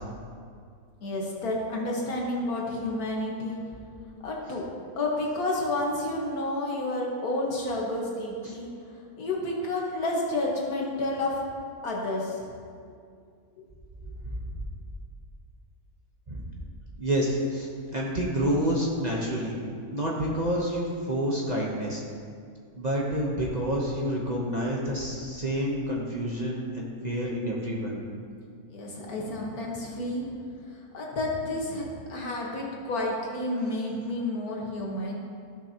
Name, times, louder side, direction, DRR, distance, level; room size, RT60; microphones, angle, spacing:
voice 1, 1.0-3.6 4.2-4.7 5.0-11.4 11.8-12.5 28.7-30.3 30.9-35.2, left 2 dB, 75° left, -2 dB, 1.9 m, -30 dB
voice 2, 17.0-19.5 19.9-22.0 22.8-28.0, equal, 30° right, -3 dB, 0.9 m, -28 dB
15.0 x 6.1 x 2.9 m, 2.2 s
omnidirectional pair, 1.6 m